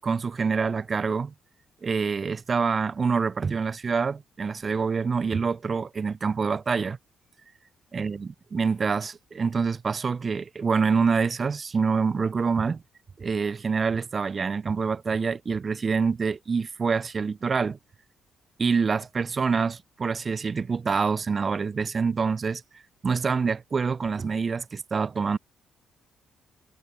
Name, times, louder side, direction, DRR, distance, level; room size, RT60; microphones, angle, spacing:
voice 1, 0.0-1.3 1.8-7.0 7.9-12.8 13.2-17.8 18.6-22.6 23.0-25.4, right 5 dB, 35° right, 6.0 m, -26 dB
cardioid pair, 90°, 0 cm